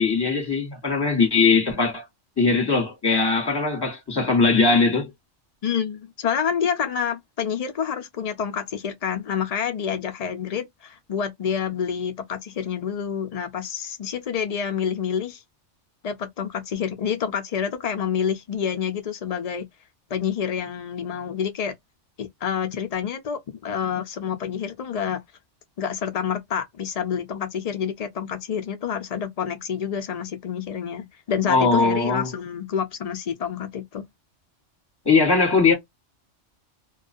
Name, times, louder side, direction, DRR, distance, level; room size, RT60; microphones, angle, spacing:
voice 1, 0.0-2.0 2.4-5.1 31.5-32.3 35.0-35.7, left 4 dB, 20° left, 1.1 m, -20 dB
voice 2, 5.6-15.4 16.0-19.6 20.1-21.7 22.2-25.2 25.8-34.0, left 7 dB, 90° left, 0.3 m, -28 dB
2.3 x 2.3 x 2.4 m
omnidirectional pair, 1.2 m